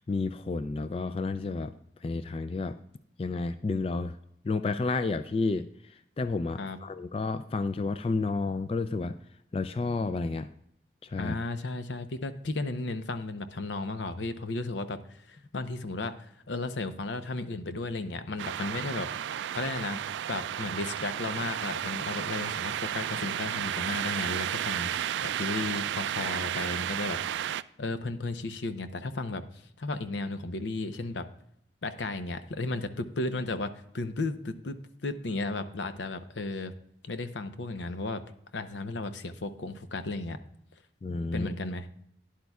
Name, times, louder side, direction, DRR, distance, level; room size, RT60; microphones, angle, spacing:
voice 1, 0.0-1.7 2.0-2.8 3.2-4.2 4.4-9.2 9.5-10.5 11.0-11.4 41.0-41.5, left 3 dB, 30° left, 11 dB, 0.3 m, -31 dB
voice 2, 11.2-19.1 19.5-20.0 20.3-24.9 25.2-27.5 27.8-29.4 29.8-31.3 31.8-36.7 37.0-38.2 38.5-40.4 41.3-41.9, left 2 dB, 85° left, 10 dB, 0.7 m, -34 dB
sound 1, 18.4-27.6, right 10 dB, 85° right, 0.3 m, -33 dB
12.0 x 10.5 x 2.3 m, 0.72 s
head